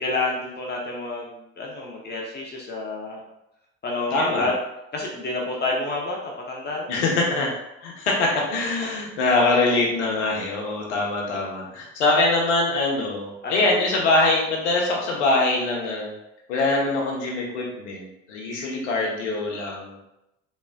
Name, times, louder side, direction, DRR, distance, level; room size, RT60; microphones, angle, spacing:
voice 1, 0.0-3.2 3.8-4.6 4.9-7.1 13.4-13.9, left 2 dB, 30° left, -2 dB, 0.8 m, -29 dB
voice 2, 4.1-4.5 6.9-7.5 7.8-16.1 16.5-20.0, left 2 dB, 75° left, -2 dB, 1.0 m, -23 dB
3.6 x 3.1 x 2.2 m, 0.88 s
hypercardioid pair, 60°, 34 cm